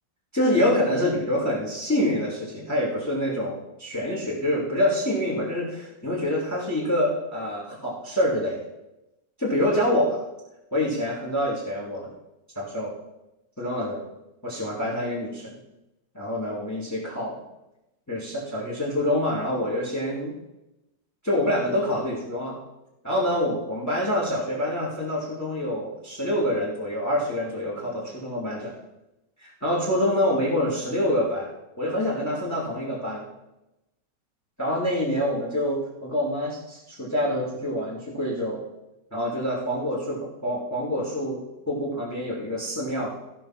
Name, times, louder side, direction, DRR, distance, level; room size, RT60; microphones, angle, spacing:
voice 1, 0.3-8.6 9.4-10.2 10.7-12.1 12.5-12.9 13.6-14.0 14.4-15.5 16.1-17.4 18.1-20.3 21.2-22.6 23.0-28.7 29.4-31.5 31.8-33.2 34.6-38.6 39.1-43.2, left 1 dB, 10° left, -3 dB, 2.6 m, -26 dB
16.0 x 5.6 x 6.0 m, 0.92 s
omnidirectional pair, 1.9 m